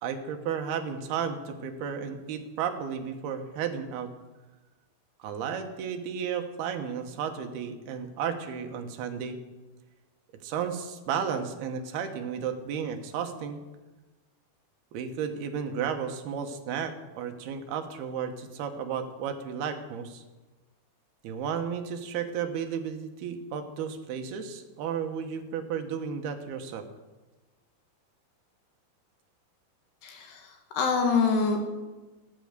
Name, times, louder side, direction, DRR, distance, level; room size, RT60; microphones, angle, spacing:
voice 1, 0.0-4.1 5.2-9.4 10.4-13.6 14.9-20.2 21.2-26.9, right 7 dB, 75° right, 6 dB, 3.2 m, -33 dB
voice 2, 30.0-31.6, left 5 dB, 80° left, 3 dB, 3.9 m, -26 dB
15.5 x 13.0 x 6.7 m, 1.2 s
omnidirectional pair, 4.7 m